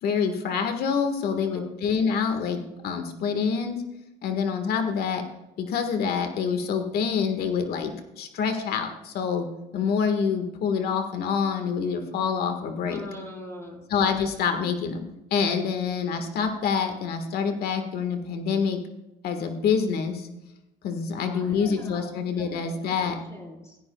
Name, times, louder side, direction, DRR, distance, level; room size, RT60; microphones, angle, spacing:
voice 1, 0.0-3.8 4.2-5.2 5.6-9.5 9.7-13.0 13.9-15.0 15.3-18.8 19.2-20.3 20.8-23.2, left 6 dB, 70° left, 6 dB, 1.6 m, -26 dB
voice 2, 1.3-1.7 12.9-13.8 21.1-22.0 22.4-23.8, left 1 dB, 15° left, -1 dB, 4.7 m, -42 dB
16.5 x 14.0 x 2.3 m, 0.95 s
cardioid pair, 110°, 17 cm